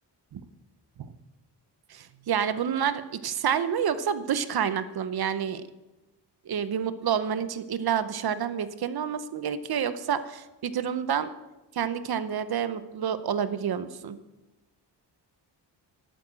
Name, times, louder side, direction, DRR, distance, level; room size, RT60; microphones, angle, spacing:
voice 1, 1.9-5.6 6.5-11.3 11.7-14.2, right 8 dB, 60° right, 13 dB, 0.8 m, -28 dB
11.5 x 8.6 x 7.5 m, 1.0 s
wide cardioid pair, 160°, 42 cm